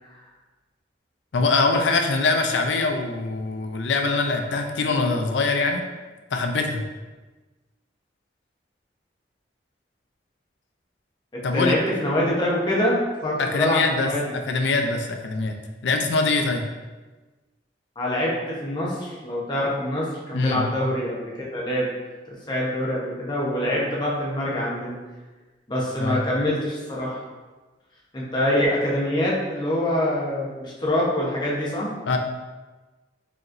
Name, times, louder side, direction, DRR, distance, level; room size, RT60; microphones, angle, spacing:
voice 1, 1.3-5.8 6.3-6.8 11.4-11.7 13.4-14.1 14.4-15.6 15.8-16.6 20.3-20.7 26.0-26.2 32.1-32.2, left 3 dB, 80° left, 4 dB, 0.5 m, -23 dB
voice 2, 11.3-14.4 18.0-21.9 22.3-25.0 25.7-27.2 28.1-31.9, left 1 dB, 25° left, -5 dB, 0.8 m, -25 dB
4.9 x 3.0 x 2.5 m, 1.2 s
head